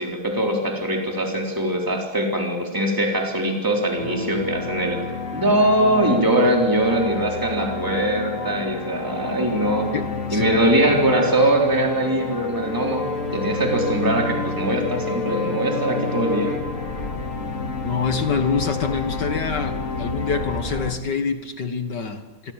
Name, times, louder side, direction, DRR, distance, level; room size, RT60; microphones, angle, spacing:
voice 1, 0.0-5.0 5.3-9.9 10.3-16.6, right 1 dB, 10° right, 1 dB, 3.8 m, -22 dB
sound 1, 4.0-20.9, left 4 dB, 35° left, 2.9 m, -29 dB
voice 2, 9.9-10.6 17.8-22.5, left 5 dB, 55° left, 7 dB, 2.1 m, -26 dB
26.5 x 23.0 x 7.5 m, 1.1 s
omnidirectional pair, 2.4 m